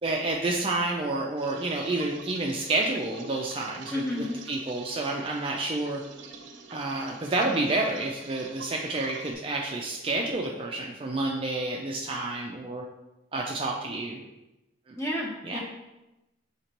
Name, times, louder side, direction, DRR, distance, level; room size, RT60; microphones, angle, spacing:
voice 1, 0.0-6.0 6.7-12.8 13.3-14.2 14.9-15.0 15.4-15.6, right 2 dB, 30° right, 0 dB, 0.3 m, -29 dB
sound 1, 1.4-9.3, right 4 dB, 75° right, 0.5 m, -46 dB
voice 2, 3.9-4.4 15.0-15.6, left 1 dB, 15° left, -4 dB, 0.9 m, -31 dB
6.4 x 2.9 x 2.9 m, 0.98 s
head